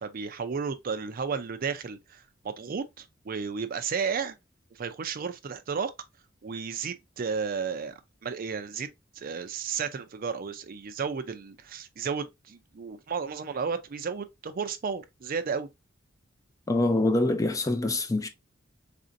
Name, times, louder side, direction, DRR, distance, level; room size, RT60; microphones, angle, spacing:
voice 1, 0.0-4.4 4.7-5.9 6.4-7.9 8.2-15.7, right 5 dB, 50° right, 0.4 m, -33 dB
voice 2, 16.7-18.3, left 2 dB, 15° left, 0.4 m, -25 dB
4.2 x 2.5 x 2.7 m
head